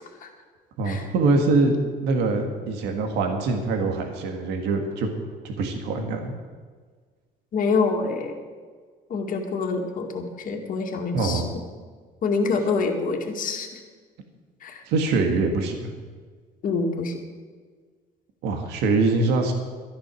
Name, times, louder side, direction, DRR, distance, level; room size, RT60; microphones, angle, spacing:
voice 1, 0.8-1.7 2.0-5.1 5.4-6.3 11.1-11.4 14.9-15.9 18.4-19.5, right 3 dB, 85° right, 4 dB, 1.9 m, -23 dB
voice 2, 7.5-8.3 9.1-11.4 12.2-13.8 14.6-14.8 16.6-17.1, left 4 dB, 55° left, 2 dB, 2.1 m, -26 dB
12.5 x 10.5 x 6.3 m, 1.5 s
cardioid pair, 110°, 17 cm